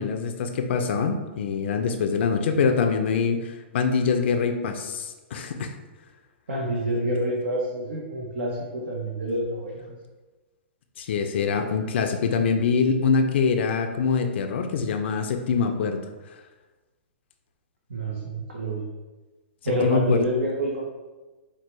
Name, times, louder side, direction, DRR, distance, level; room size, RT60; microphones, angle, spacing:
voice 1, 0.0-5.7 11.0-16.0 19.8-20.2, left 5 dB, 65° left, 6 dB, 0.4 m, -24 dB
voice 2, 6.5-10.0 17.9-18.8 19.6-20.8, right 1 dB, 85° right, -3 dB, 0.7 m, -27 dB
4.4 x 2.2 x 3.0 m, 1.2 s
hypercardioid pair, 135°, 7 cm